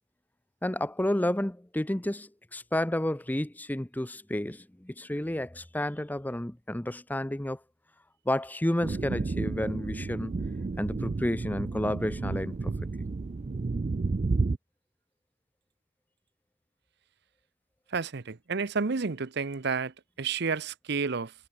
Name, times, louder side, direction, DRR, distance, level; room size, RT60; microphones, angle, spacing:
voice 1, 0.6-7.6 8.3-10.3 10.8-12.7, left 1 dB, 10° left, 0.6 m, -31 dB
sound 1, 8.8-14.6, right 3 dB, 35° right, 0.4 m, -31 dB
voice 2, 17.9-21.3, right 5 dB, 60° right, 0.8 m, -31 dB
head